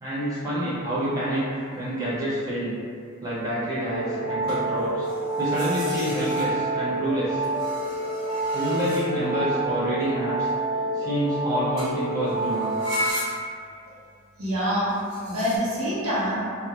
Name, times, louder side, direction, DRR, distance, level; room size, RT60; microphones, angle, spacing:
voice 1, 0.0-2.8 3.2-5.1 5.4-7.4 8.5-10.5 10.9-12.7, right 1 dB, 15° right, -11 dB, 0.5 m, -27 dB
sound 1, 1.6-1.8 4.5-6.9 7.4-9.4 11.8-12.0 12.2-13.7 14.9-15.6, equal, 45° right, 1.0 m, -35 dB
sound 2, 3.9-13.1, right 2 dB, 80° left, 0.5 m, -28 dB
voice 2, 14.4-14.9 15.3-16.4, equal, 80° right, -8 dB, 0.8 m, -25 dB
2.8 x 2.2 x 2.3 m, 2.3 s
head